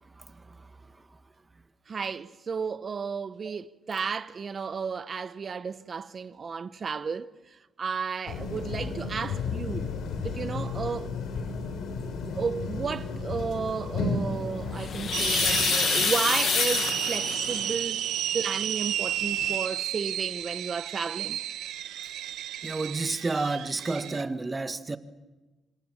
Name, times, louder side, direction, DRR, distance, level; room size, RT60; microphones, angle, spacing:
voice 1, 1.9-7.3 7.8-9.9 10.2-11.2 12.4-18.0 18.3-21.4, right 5 dB, 40° right, 0.8 m, -33 dB
sound 1, 8.3-15.7, left 4 dB, 75° left, 3.9 m, -33 dB
sound 2, 14.5-17.8 19.0-19.1 19.4-19.6, left 7 dB, 55° left, 1.3 m, -28 dB
sound 3, 15.1-24.2, right 11 dB, 85° right, 1.4 m, -32 dB
voice 2, 22.6-25.0, right 3 dB, 25° right, 1.5 m, -30 dB
26.5 x 25.5 x 7.3 m
cardioid pair, 90°, 0 cm